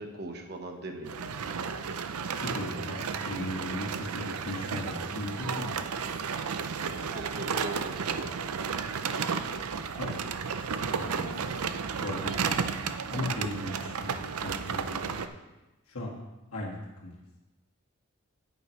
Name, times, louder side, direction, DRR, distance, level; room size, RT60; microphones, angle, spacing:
voice 1, 0.0-1.5 6.8-8.8, right 1 dB, 50° right, 4 dB, 1.2 m, -40 dB
sound 1, 1.1-15.3, right 6 dB, 90° right, 0.6 m, -33 dB
voice 2, 2.3-5.8 10.0-10.2 10.7-11.5 12.0-12.8 13.1-15.2 15.9-16.1 16.5-16.8 17.0-17.1, left 1 dB, 80° left, -3 dB, 1.9 m, -37 dB
9.9 x 9.2 x 3.2 m, 1.1 s
head